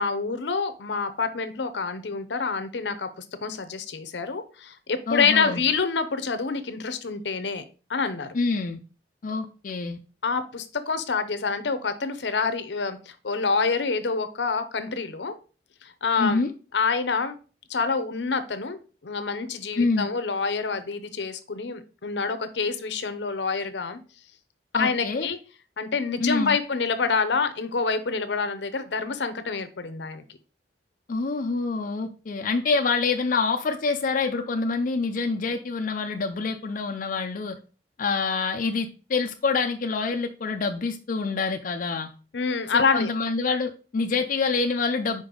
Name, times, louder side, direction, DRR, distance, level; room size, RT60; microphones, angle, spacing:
voice 1, 0.0-7.6 7.9-8.3 10.2-15.3 15.8-16.4 16.7-17.4 17.7-24.0 24.7-25.4 25.8-30.2 42.3-43.1, left 5 dB, 75° left, 10 dB, 0.7 m, -27 dB
voice 2, 5.1-5.6 8.3-8.8 9.2-10.0 16.2-16.5 19.8-20.1 24.7-25.3 26.2-26.6 31.1-37.6 38.0-42.1 42.7-45.2, left 4 dB, 50° left, 4 dB, 0.4 m, -26 dB
5.2 x 4.7 x 3.8 m, 0.36 s
head